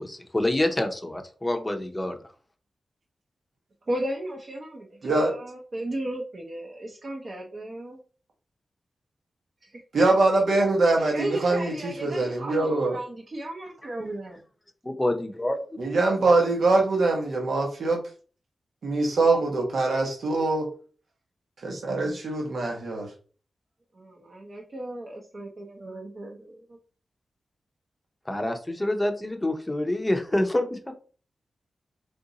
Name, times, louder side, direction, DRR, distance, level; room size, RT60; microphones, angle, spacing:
voice 1, 0.0-2.2 14.8-15.6 28.3-30.9, left 1 dB, 15° left, 0.7 m, -27 dB
voice 2, 3.9-8.0 9.6-9.8 11.0-14.4 23.9-26.8, right 1 dB, 45° right, 0.8 m, -35 dB
voice 3, 5.0-5.3 9.9-13.0 15.8-18.0 18.8-20.7 21.6-23.1, right 2 dB, 75° right, 1.1 m, -23 dB
3.6 x 2.6 x 3.9 m
wide cardioid pair, 120°, 0 cm